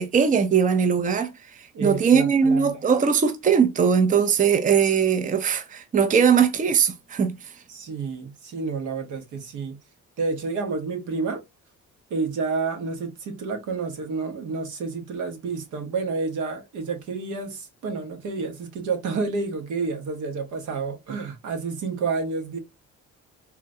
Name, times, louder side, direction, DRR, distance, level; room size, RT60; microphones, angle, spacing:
voice 1, 0.0-7.5, right 6 dB, 25° right, 0.5 m, -20 dB
voice 2, 1.7-2.8 7.7-9.8 10.2-11.4 12.1-22.6, right 4 dB, 80° right, 1.0 m, -29 dB
3.7 x 2.2 x 2.6 m
cardioid pair, 90°, 30 cm